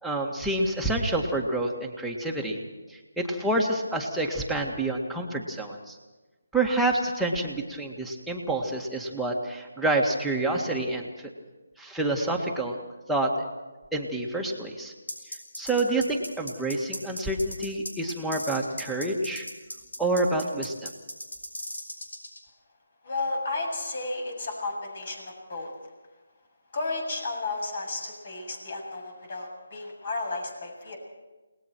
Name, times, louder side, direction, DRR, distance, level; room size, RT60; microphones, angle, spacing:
voice 1, 0.0-2.6 2.9-6.0 6.5-11.1 11.8-12.8 13.1-13.5 13.9-14.9 15.2-19.5 20.0-20.9, right 2 dB, ahead, -3 dB, 1.9 m, -28 dB
sound 1, 15.1-22.4, left 1 dB, 90° left, 6.1 m, -37 dB
voice 2, 23.0-25.7 26.7-31.0, left 3 dB, 50° left, 3 dB, 7.7 m, -33 dB
29.5 x 19.5 x 4.6 m, 1.2 s
figure-of-eight pair, 160°, 0 cm